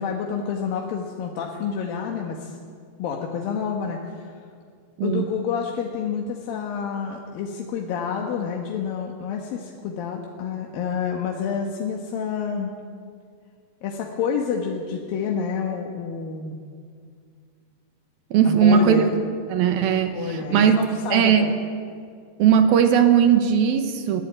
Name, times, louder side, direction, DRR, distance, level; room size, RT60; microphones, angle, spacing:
voice 1, 0.0-2.5 3.0-4.3 5.0-12.7 13.8-16.6 18.4-19.1 20.1-21.5, left 6 dB, 65° left, 0 dB, 2.7 m, -28 dB
voice 2, 5.0-5.3 18.3-19.0 19.5-20.8 21.1-21.5 22.4-24.2, right 8 dB, 70° right, 7 dB, 2.6 m, -18 dB
21.5 x 14.0 x 8.8 m, 2.2 s
omnidirectional pair, 5.0 m